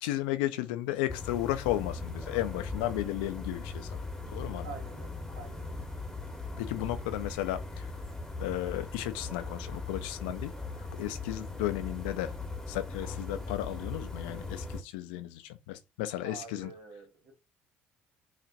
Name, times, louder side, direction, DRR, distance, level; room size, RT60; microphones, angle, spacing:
voice 1, 0.0-4.7 6.6-7.9 8.4-12.3 12.7-16.7, left 15 dB, 80° left, 0.5 m, -34 dB
sound 1, 1.1-14.8, left 3 dB, 10° left, 1.2 m, -39 dB
voice 2, 4.6-5.8 16.1-17.3, right 5 dB, 75° right, 1.4 m, -47 dB
5.8 x 2.5 x 2.6 m
hypercardioid pair, 55°, 5 cm